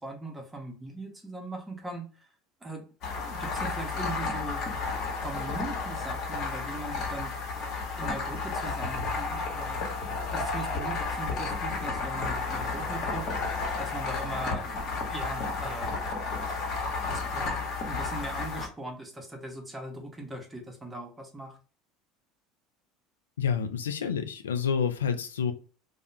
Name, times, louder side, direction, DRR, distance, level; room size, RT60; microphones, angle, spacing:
voice 1, 0.0-2.3 2.6-2.9 3.2-4.6 5.1-7.3 7.9-16.0 17.1-17.6 17.9-21.6, right 2 dB, 15° right, 2 dB, 0.7 m, -40 dB
sound 1, 3.0-18.7, left 4 dB, 50° left, 0.9 m, -32 dB
voice 2, 23.4-25.5, left 7 dB, 90° left, 8 dB, 0.3 m, -28 dB
2.3 x 2.1 x 3.0 m, 0.37 s
hypercardioid pair, 80°, 0 cm